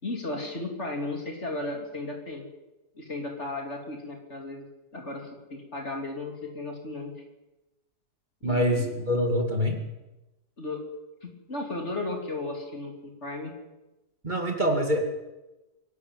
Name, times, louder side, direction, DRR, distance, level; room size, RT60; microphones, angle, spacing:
voice 1, 0.0-2.5 3.0-4.7 4.9-7.1 8.4-9.0 10.6-10.8 11.2-13.5, left 2 dB, 40° left, 2 dB, 3.8 m, -35 dB
voice 2, 8.4-9.8 14.2-15.0, equal, 30° right, 2 dB, 2.6 m, -25 dB
23.5 x 12.0 x 9.2 m, 1.0 s
omnidirectional pair, 1.7 m